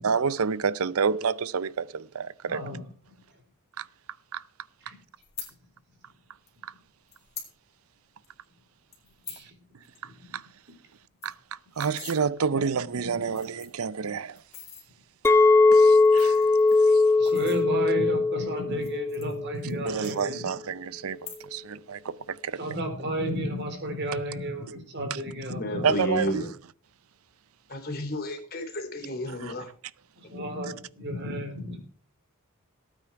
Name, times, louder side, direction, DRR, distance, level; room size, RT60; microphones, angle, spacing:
voice 1, 0.0-2.6 3.8-3.9 4.3-4.4 6.6-6.7 10.0-10.4 11.2-14.4 15.7-16.4 16.9-17.0 19.8-22.8 25.1-25.2 25.8-26.4 29.4-29.5, right 6 dB, 75° right, 0.6 m, -29 dB
voice 2, 2.5-2.8 9.3-9.5 12.5-12.6 13.0-13.4 17.2-20.5 22.6-25.9 30.2-31.8, equal, 55° right, 3.8 m, -33 dB
sound 1, 5.2-5.5 6.5-6.6 7.1-7.5 7.9-8.0 8.2-8.5 8.9-9.5 9.8-10.0 10.3-10.4 10.7-10.8 11.0-12.2 12.8-12.9 13.3-13.9 14.4-14.8 15.8-18.0 18.7-19.8 20.0-20.7 21.1-21.7 22.0-22.4, left 8 dB, 30° left, 4.0 m, -44 dB
Chink clink, 15.2-19.6 19.9-20.4, left 3 dB, 10° left, 0.7 m, -20 dB
voice 3, 25.5-26.5 27.7-29.7, left 1 dB, 45° left, 3.5 m, -32 dB
18.0 x 9.1 x 4.7 m
head